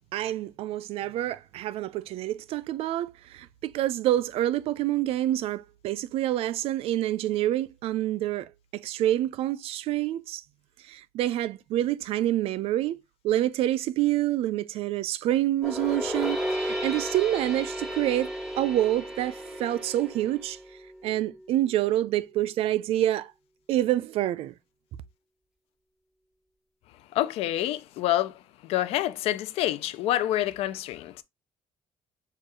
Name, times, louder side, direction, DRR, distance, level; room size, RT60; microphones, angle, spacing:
voice 1, 0.1-10.4 10.9-13.0 13.2-18.3 18.6-20.6 21.0-23.3 23.7-24.5, right 13 dB, 80° right, 0.4 m, -27 dB
sound 1, 15.6-20.9, equal, ahead, 1.8 m, -33 dB
voice 2, 27.1-31.2, left 13 dB, 90° left, 0.4 m, -27 dB
6.6 x 2.4 x 3.0 m
cardioid pair, 110°, 10 cm